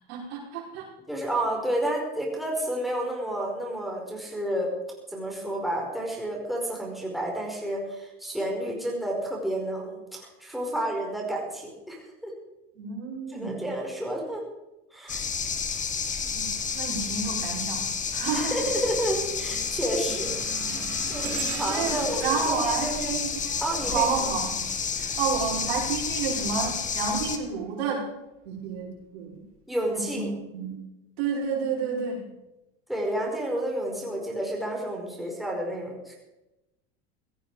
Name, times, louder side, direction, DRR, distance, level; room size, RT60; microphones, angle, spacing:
voice 1, 0.1-0.9 12.7-13.7 16.2-18.6 21.7-23.5 23.8-24.7 25.0-28.1 28.4-29.4 29.9-30.8 31.2-32.3, right 5 dB, 85° right, -2 dB, 5.0 m, -30 dB
voice 2, 1.1-4.7 5.1-12.3 13.3-14.4 14.9-15.2 18.3-20.3 20.7-23.1 23.6-24.3 29.7-30.3 32.9-36.2, right 1 dB, ahead, -2 dB, 4.8 m, -30 dB
sound 1, 15.1-27.4, left 6 dB, 25° left, 1.6 m, -30 dB
sound 2, 16.7-17.1 17.5-24.4 25.6-27.8 28.4-28.6 29.5-29.6, right 8 dB, 45° right, 2.5 m, -42 dB
17.0 x 13.5 x 4.9 m, 0.98 s
supercardioid pair, 115°, 31 cm